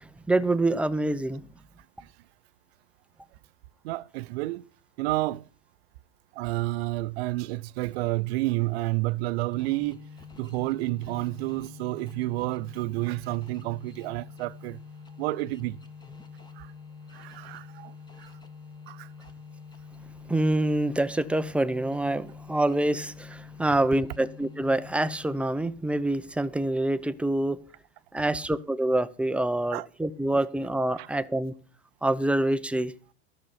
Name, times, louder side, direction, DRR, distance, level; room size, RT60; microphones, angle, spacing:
voice 1, 0.3-1.4 20.3-27.6 28.1-31.5 32.0-32.9, right 1 dB, 5° right, 0.5 m, -26 dB
voice 2, 3.8-4.7 5.0-5.5 6.3-10.0 10.4-14.8 15.2-15.8 16.6-16.7 17.1-18.3 18.9-19.1 29.7-29.9 31.0-31.1, right 19 dB, 65° right, 0.6 m, -30 dB
sound 1, 9.5-25.7, left 5 dB, 10° left, 1.2 m, -46 dB
13.0 x 6.7 x 5.8 m
hypercardioid pair, 95°, 34 cm